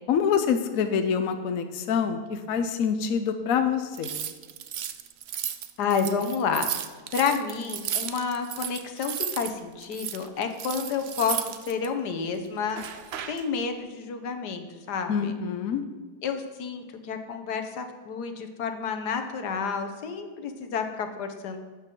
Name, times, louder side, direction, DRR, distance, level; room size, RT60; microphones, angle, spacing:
voice 1, 0.1-4.1 15.1-15.8, left 7 dB, 65° left, 8 dB, 1.1 m, -26 dB
sound 1, 3.9-9.5 9.8-11.9 12.7-13.5, right 9 dB, 65° right, 0.6 m, -34 dB
voice 2, 5.8-6.7 7.1-12.8 13.3-15.3 16.2-21.6, left 6 dB, 80° left, 7 dB, 1.6 m, -30 dB
12.0 x 8.9 x 3.8 m, 1.4 s
omnidirectional pair, 1.7 m